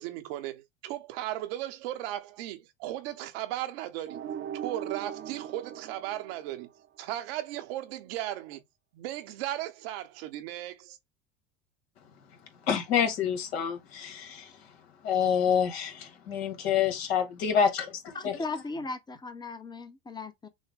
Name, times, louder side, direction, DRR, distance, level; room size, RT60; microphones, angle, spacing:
voice 1, 0.0-4.2 4.6-6.7 7.0-8.6 8.9-11.0, right 13 dB, 70° right, 0.9 m, -36 dB
sound 1, 4.1-7.0, right 9 dB, 40° right, 0.8 m, -40 dB
voice 2, 12.7-14.6 15.0-18.4, left 7 dB, 75° left, 1.8 m, -27 dB
voice 3, 18.1-20.5, left 3 dB, 15° left, 0.9 m, -37 dB
6.3 x 2.2 x 3.6 m
hypercardioid pair, 85°, 31 cm